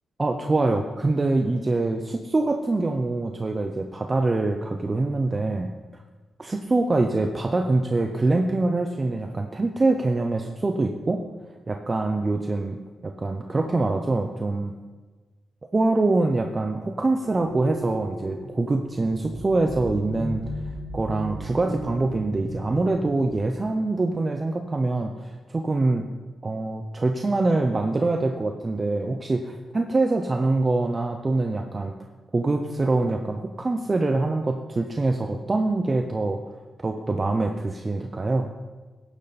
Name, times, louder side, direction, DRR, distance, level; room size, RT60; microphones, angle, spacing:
voice 1, 0.2-6.0 6.4-11.2 11.7-12.8 13.0-14.7 15.7-20.4 20.9-26.1 26.4-31.9 32.3-38.5, right 2 dB, 30° right, 4 dB, 0.8 m, -24 dB
sound 1, 17.2-23.5, equal, 50° right, 5.2 m, -36 dB
16.5 x 10.5 x 4.3 m, 1.3 s
cardioid pair, 105°, 0 cm